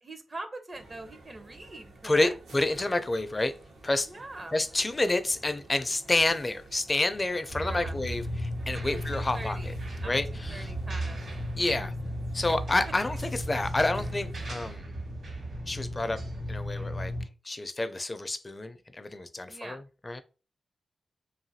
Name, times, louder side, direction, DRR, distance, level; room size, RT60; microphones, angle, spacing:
voice 1, 0.0-2.4 4.1-4.6 7.5-8.0 8.9-11.2 11.8-12.2 12.5-12.6 19.5-19.8, right 2 dB, 40° right, 8 dB, 0.6 m, -43 dB
sound 1, 0.7-14.8, right 2 dB, 90° right, 0.8 m, -51 dB
voice 2, 2.0-3.5 3.8-4.1 4.5-9.6 10.1-10.7 11.6-11.9 12.3-14.8 15.7-16.2 16.5-17.1 17.5-20.2, left 2 dB, 35° left, 10 dB, 0.4 m, -29 dB
sound 2, 7.5-17.3, equal, 65° right, 1.3 m, -35 dB
2.7 x 2.4 x 2.7 m, 0.33 s
supercardioid pair, 40°, 0 cm